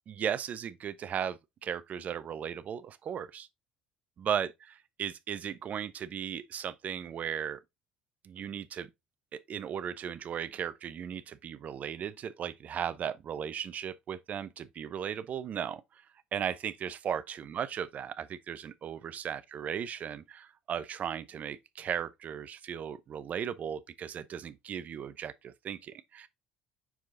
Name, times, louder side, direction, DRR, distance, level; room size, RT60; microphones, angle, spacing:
voice 1, 0.1-3.5 4.2-7.6 8.2-8.9 9.3-16.0 16.3-26.3, right 8 dB, 45° right, 0.7 m, -36 dB
5.7 x 4.7 x 3.8 m
hypercardioid pair, 60°, 4 cm